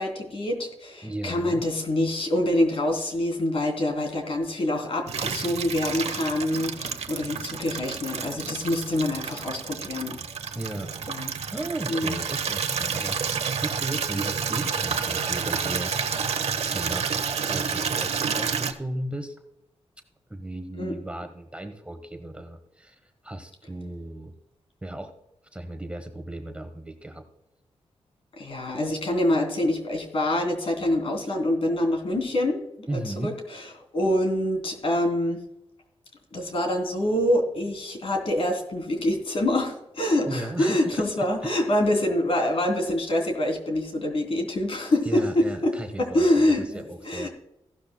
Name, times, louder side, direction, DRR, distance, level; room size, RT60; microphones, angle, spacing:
voice 1, 0.0-10.2 11.1-11.3 11.9-12.1 20.8-20.9 28.4-33.7 33.9-35.4 36.3-45.7 46.0-47.3, left 1 dB, 60° left, 3 dB, 3.0 m, -25 dB
voice 2, 1.0-1.6 10.5-10.9 11.5-15.9 16.7-17.1 17.4-19.4 20.3-24.3 24.8-25.1 25.5-27.2 32.9-33.4 40.3-41.3 45.0-47.3, right 1 dB, 10° right, 6 dB, 1.2 m, -35 dB
Water tap faucet / Liquid, 5.1-18.7, right 6 dB, 75° right, 1.0 m, -29 dB
15.5 x 12.0 x 2.2 m, 0.83 s
wide cardioid pair, 100°, 11 cm